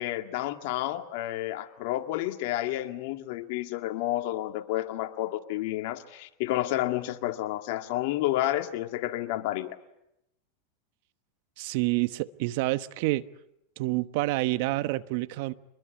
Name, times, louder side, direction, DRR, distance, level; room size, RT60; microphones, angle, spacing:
voice 1, 0.0-9.8, left 15 dB, 65° left, 6 dB, 2.0 m, -30 dB
voice 2, 11.6-13.2 13.8-15.5, right 19 dB, 65° right, 14 dB, 1.1 m, -28 dB
25.0 x 21.0 x 9.5 m, 0.85 s
hypercardioid pair, 110°, 0 cm